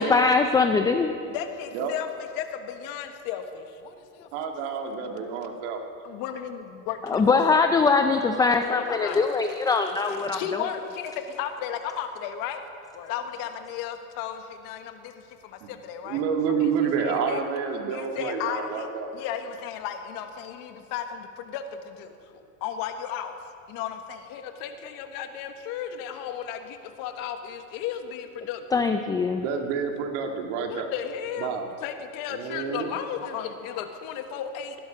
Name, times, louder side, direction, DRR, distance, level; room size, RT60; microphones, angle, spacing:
voice 1, 0.0-1.1 7.1-10.6 28.7-29.4, left 4 dB, 10° left, 6 dB, 0.4 m, -22 dB
voice 2, 1.3-4.3 6.0-7.7 8.4-9.3 10.1-12.6 12.9-16.2 16.5-16.6 17.0-17.4 17.9-18.9 19.1-23.4 23.7-28.8 30.7-31.5 31.8-34.8, left 9 dB, 55° left, 7 dB, 1.5 m, -35 dB
voice 3, 4.3-5.8 15.6-15.7 16.0-19.1 29.4-30.9 31.4-31.7 32.3-32.9, right 6 dB, 65° right, 3 dB, 2.0 m, -29 dB
18.0 x 11.5 x 5.1 m, 2.6 s
supercardioid pair, 125°, 39 cm